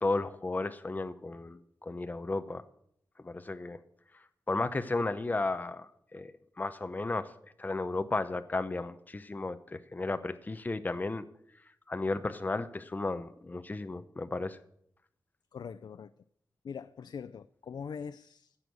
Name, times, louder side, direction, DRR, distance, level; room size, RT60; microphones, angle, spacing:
voice 1, 0.0-2.6 3.2-3.8 4.5-6.3 6.6-7.3 7.6-11.2 11.9-14.6, left 2 dB, 25° left, 0.7 m, -34 dB
voice 2, 15.5-16.1 16.6-18.6, left 6 dB, 75° left, 0.4 m, -42 dB
15.5 x 6.3 x 9.3 m
wide cardioid pair, 140°, 7 cm